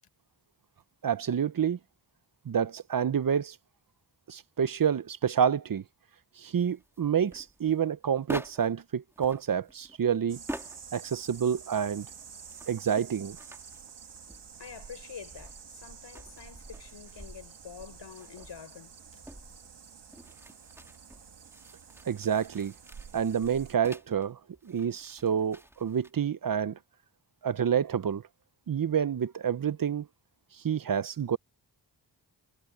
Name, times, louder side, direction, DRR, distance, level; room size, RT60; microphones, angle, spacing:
voice 1, 1.0-1.8 2.5-3.6 4.3-5.8 6.4-10.4 10.9-12.1 12.7-13.4 22.1-22.7 23.1-26.8 27.4-28.2 28.7-30.1 30.6-31.4, right 8 dB, 50° right, 0.8 m, -28 dB
sound 1, 6.6-8.8 9.1-11.0 11.4-14.8 15.2-24.3 24.5-26.1, right 1 dB, 5° right, 2.3 m, -47 dB
sound 2, 10.3-23.8, right 6 dB, 75° right, 2.1 m, -49 dB
voice 2, 14.6-19.2, left 7 dB, 90° left, 5.2 m, -47 dB
cardioid pair, 60°, 42 cm